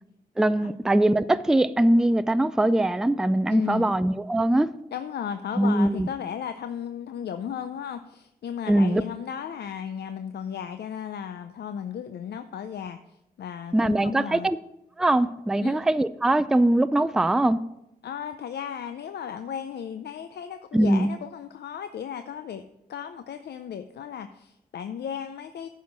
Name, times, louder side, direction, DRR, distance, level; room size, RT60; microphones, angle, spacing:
voice 1, 0.4-4.7 5.6-6.1 8.7-9.0 13.7-14.6 15.0-17.6 20.7-21.1, right 1 dB, 5° right, 0.3 m, -22 dB
voice 2, 3.5-3.8 4.9-13.0 13.4-14.5 15.6-15.8 18.0-22.6 22.9-25.7, left 8 dB, 80° left, 0.5 m, -35 dB
9.5 x 5.6 x 6.0 m
cardioid pair, 70°, 17 cm